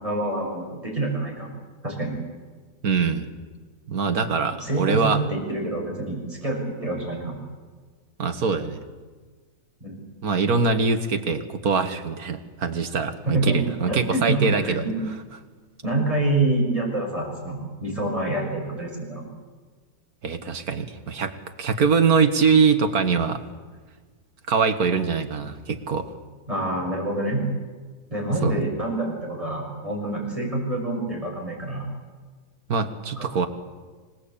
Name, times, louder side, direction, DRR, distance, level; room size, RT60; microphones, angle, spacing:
voice 1, 0.0-1.5 1.8-2.1 4.6-7.4 9.8-10.0 13.2-15.0 15.8-19.2 26.5-27.4 28.1-31.9 33.2-33.3, right 2 dB, 20° right, -1 dB, 6.7 m, -26 dB
voice 2, 2.8-3.3 3.9-5.2 8.2-8.8 10.2-14.8 20.2-23.4 24.5-26.1 28.4-28.6 32.7-33.5, right 5 dB, 65° right, 8 dB, 2.1 m, -23 dB
26.0 x 18.5 x 8.7 m, 1.5 s
omnidirectional pair, 1.7 m